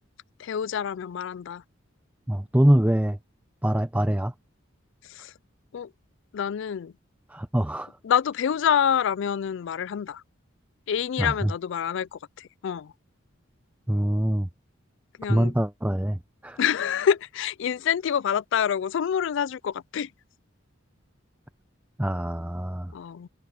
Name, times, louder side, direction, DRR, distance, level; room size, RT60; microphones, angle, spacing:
voice 1, 0.4-1.6 5.0-5.3 5.7-5.9 6.3-6.9 8.0-10.2 10.9-12.9 15.2-15.5 16.6-20.1 22.9-23.3, left 8 dB, 65° left, 0.3 m, -27 dB
voice 2, 2.3-3.2 3.6-4.3 7.3-7.9 11.2-11.5 13.9-14.5 15.3-16.6 22.0-22.9, right 1 dB, 10° right, 0.7 m, -24 dB
head